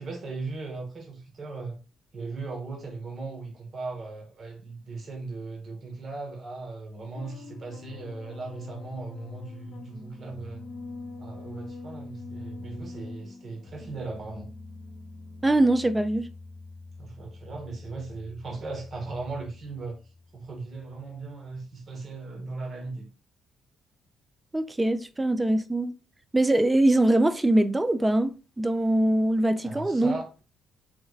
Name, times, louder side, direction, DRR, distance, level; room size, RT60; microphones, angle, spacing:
voice 1, 0.0-1.8 2.1-10.6 11.2-14.5 17.0-20.0 20.3-23.1 29.6-30.3, right 3 dB, 45° right, 1.1 m, -38 dB
sound 1, 7.1-21.0, left 3 dB, 70° left, 1.0 m, -44 dB
voice 2, 15.4-16.3 24.5-25.9 26.3-28.3 28.6-30.2, right 1 dB, 15° right, 0.4 m, -22 dB
3.3 x 3.2 x 2.3 m
cardioid pair, 90°, 0 cm